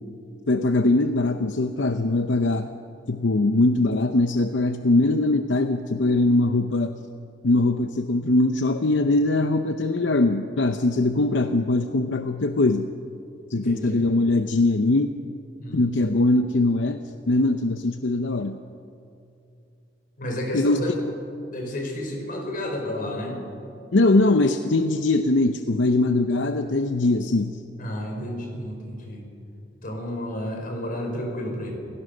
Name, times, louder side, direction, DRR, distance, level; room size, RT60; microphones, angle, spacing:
voice 1, 0.5-2.7 3.1-7.0 7.4-12.9 13.5-15.2 15.7-18.6 20.5-20.8 23.9-27.6, left 2 dB, 80° left, 8 dB, 0.8 m, -21 dB
voice 2, 13.5-14.0 15.6-16.2 20.2-21.0 21.5-23.4 27.8-29.2 29.8-31.8, left 1 dB, 50° left, 1 dB, 4.9 m, -31 dB
27.5 x 16.5 x 6.7 m, 2.7 s
head